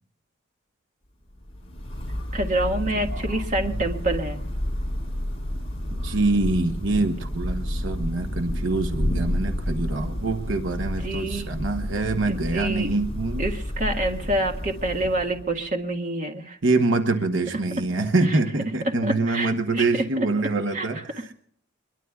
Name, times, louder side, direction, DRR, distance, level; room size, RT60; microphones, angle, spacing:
Thunder / Rain, 1.3-15.7, equal, 30° left, 5.2 m, -30 dB
voice 1, 2.3-4.4 11.0-11.5 12.3-12.9 13.4-16.6 17.8-17.9 18.2-18.4 18.8-20.3 20.7-20.9 21.2-21.3, right 1 dB, 40° right, 3 dB, 1.8 m, -27 dB
voice 2, 5.9-13.4 16.6-21.0, right 2 dB, 70° right, 6 dB, 1.1 m, -25 dB
23.5 x 22.0 x 2.4 m, 0.64 s
head